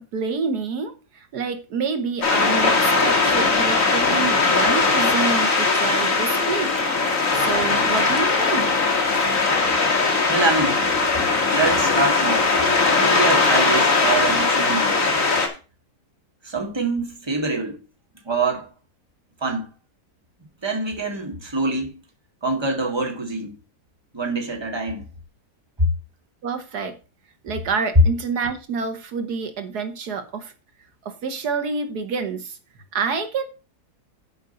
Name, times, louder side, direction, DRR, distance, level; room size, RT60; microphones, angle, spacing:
voice 1, 0.0-6.7 7.3-8.7 26.4-27.0 27.4-30.5 31.0-32.6 32.9-33.4, right 5 dB, 80° right, 1.7 m, -28 dB
sound 1, 2.2-15.5, left 3 dB, 55° left, 2.3 m, -19 dB
voice 2, 10.3-10.8 11.5-12.5 13.0-15.0 16.4-17.8 18.3-18.7 19.4-19.7 20.6-21.9 22.4-23.6 24.1-25.0 25.8-25.9, right 3 dB, 15° right, 1.7 m, -25 dB
8.1 x 5.2 x 6.8 m
omnidirectional pair, 1.7 m